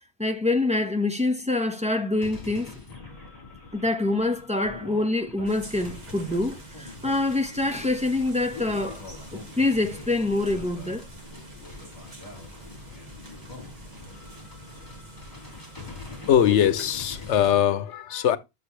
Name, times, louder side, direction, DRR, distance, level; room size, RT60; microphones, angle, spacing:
voice 1, 0.2-2.7 3.7-11.1, left 2 dB, 5° right, 1.1 m, -26 dB
sound 1, 2.2-17.6, left 4 dB, 40° left, 4.4 m, -44 dB
sound 2, 5.4-17.5, right 1 dB, 40° right, 1.9 m, -45 dB
voice 2, 16.3-18.4, left 10 dB, 85° left, 1.0 m, -21 dB
11.5 x 6.8 x 3.2 m
omnidirectional pair, 1.2 m